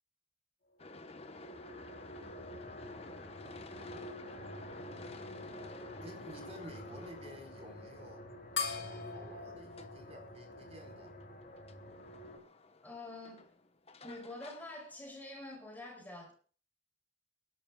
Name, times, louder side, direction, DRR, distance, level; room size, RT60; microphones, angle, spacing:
sound 1, 0.8-15.5, left 2 dB, 35° left, 1.0 m, -54 dB
sound 2, 1.0-12.4, left 1 dB, 50° left, 3.5 m, -49 dB
voice 1, 6.0-8.2 8.7-11.1, equal, 35° right, 4.5 m, -52 dB
sound 3, 8.6-11.4, left 5 dB, 65° left, 4.3 m, -42 dB
voice 2, 12.8-13.4 14.0-16.3, left 2 dB, 10° left, 5.1 m, -46 dB
28.5 x 12.0 x 2.3 m
head